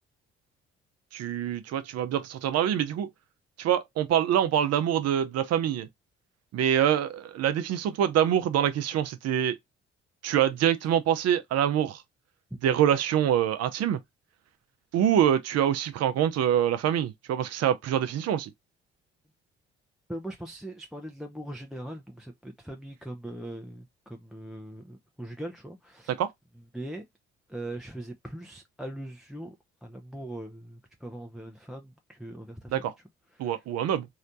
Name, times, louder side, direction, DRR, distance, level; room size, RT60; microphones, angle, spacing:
voice 1, 1.1-3.1 3.6-5.9 6.5-9.5 10.2-12.0 12.6-14.0 14.9-18.5 26.2-26.3 32.7-32.9 33.4-34.1, right 10 dB, 55° right, 0.7 m, -25 dB
voice 2, 20.1-26.1 26.7-27.1 27.5-29.5 29.8-32.9 33.3-33.6, right 1 dB, ahead, 0.6 m, -40 dB
3.2 x 2.8 x 2.5 m
hypercardioid pair, 50°, 30 cm